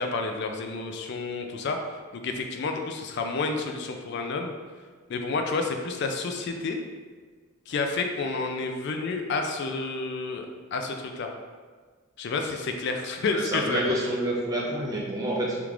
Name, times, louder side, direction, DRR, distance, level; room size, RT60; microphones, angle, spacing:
voice 1, 0.0-4.5 5.1-6.8 7.7-11.3 12.2-13.9, left 3 dB, 55° left, 4 dB, 0.3 m, -30 dB
voice 2, 13.3-15.6, right 1 dB, 15° right, -4 dB, 0.5 m, -28 dB
3.5 x 3.0 x 2.4 m, 1.5 s
head